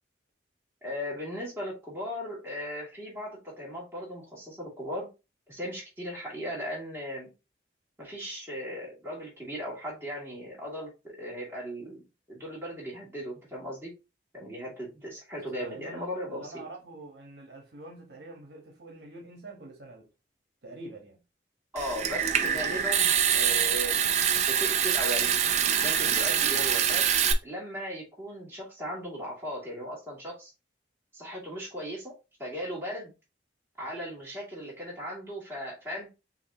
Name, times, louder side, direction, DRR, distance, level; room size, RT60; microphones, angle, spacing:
voice 1, 0.8-5.1 5.5-7.3 8.0-12.0 12.3-13.9 14.3-16.6 21.7-24.0 24.5-25.3 25.8-27.1 27.4-30.5 31.1-32.1 32.4-33.1 33.8-36.1, equal, 15° right, 2.4 m, -37 dB
voice 2, 15.5-20.1 20.6-21.2, right 2 dB, 70° right, 1.3 m, -45 dB
Water tap faucet / Sink (filling or washing) / Trickle dribble, 21.8-27.3, right 8 dB, 40° right, 0.5 m, -25 dB
6.3 x 2.9 x 2.8 m
head